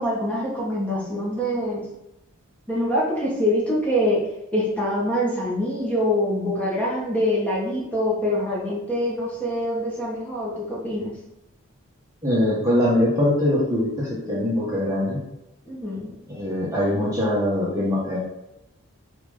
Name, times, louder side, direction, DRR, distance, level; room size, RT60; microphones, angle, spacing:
voice 1, 0.0-1.9 2.7-4.2 4.5-11.1 15.7-16.1, equal, 5° left, -6 dB, 1.8 m, -24 dB
voice 2, 12.2-15.2 16.3-18.2, left 1 dB, 15° right, -7 dB, 1.5 m, -22 dB
6.9 x 3.9 x 4.1 m, 0.90 s
head